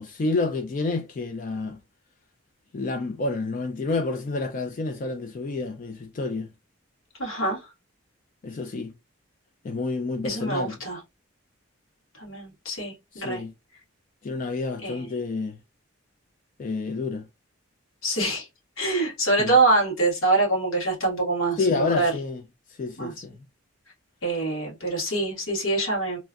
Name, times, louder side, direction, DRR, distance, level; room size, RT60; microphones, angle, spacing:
voice 1, 0.0-1.8 2.7-6.5 8.4-8.9 9.6-10.8 13.1-13.5 14.2-15.6 16.6-17.3 19.4-19.5 21.6-22.4 22.7-23.3, left 3 dB, 40° left, 0.3 m, -29 dB
voice 2, 7.2-7.6 10.2-11.0 12.2-13.4 14.8-15.1 18.0-18.5 18.8-22.1 23.0-23.1 24.2-26.2, right 2 dB, 70° left, 1.7 m, -25 dB
3.1 x 2.5 x 2.4 m
head